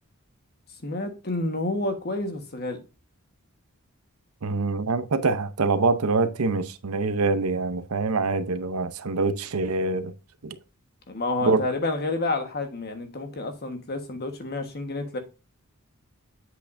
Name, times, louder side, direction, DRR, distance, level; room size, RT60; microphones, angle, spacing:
voice 1, 0.8-2.8 11.1-15.2, left 2 dB, 50° left, 1.4 m, -29 dB
voice 2, 4.4-10.1 10.4-10.6 11.4-11.6, right 3 dB, 85° right, 0.7 m, -25 dB
8.0 x 6.5 x 2.6 m
head